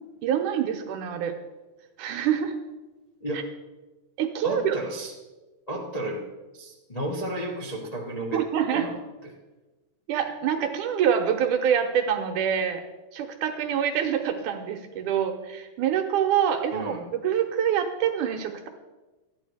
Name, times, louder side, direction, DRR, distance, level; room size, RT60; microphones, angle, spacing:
voice 1, 0.2-1.3 2.0-2.6 3.3-3.4 4.2-4.8 8.3-8.9 10.1-12.8 13.1-18.7, right 8 dB, 70° right, 5 dB, 2.2 m, -26 dB
voice 2, 4.4-5.1 5.7-6.2 6.5-8.4 8.7-8.9 16.7-17.0, right 1 dB, 60° left, -3 dB, 0.4 m, -32 dB
13.5 x 10.0 x 5.0 m, 1.2 s
omnidirectional pair, 4.0 m